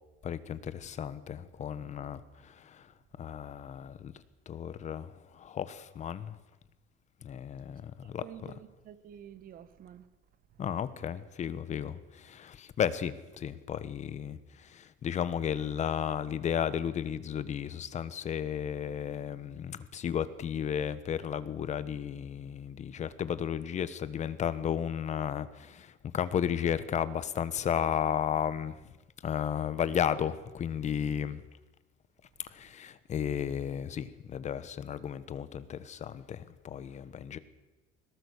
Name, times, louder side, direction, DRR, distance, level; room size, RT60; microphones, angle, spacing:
voice 1, 0.2-2.9 3.2-4.1 4.5-6.4 7.2-8.2 10.6-28.8 29.2-31.4 32.5-37.4, left 8 dB, 35° left, 1.3 m, -34 dB
voice 2, 8.0-10.1, right 10 dB, 45° right, 1.7 m, -49 dB
21.5 x 18.5 x 8.3 m
cardioid pair, 155°, 21 cm